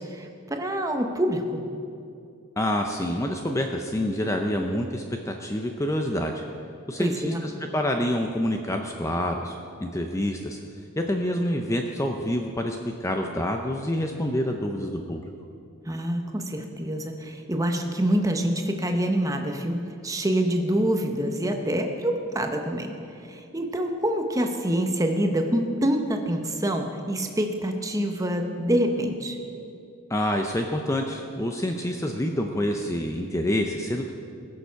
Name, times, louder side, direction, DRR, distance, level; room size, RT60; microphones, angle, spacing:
voice 1, 0.0-1.6 7.0-7.4 15.9-29.4, right 1 dB, 15° right, 4 dB, 0.9 m, -26 dB
voice 2, 2.6-6.4 6.9-10.6 11.0-15.3 30.1-34.1, left 1 dB, 15° left, 3 dB, 0.5 m, -27 dB
20.0 x 6.9 x 5.7 m, 2.6 s
head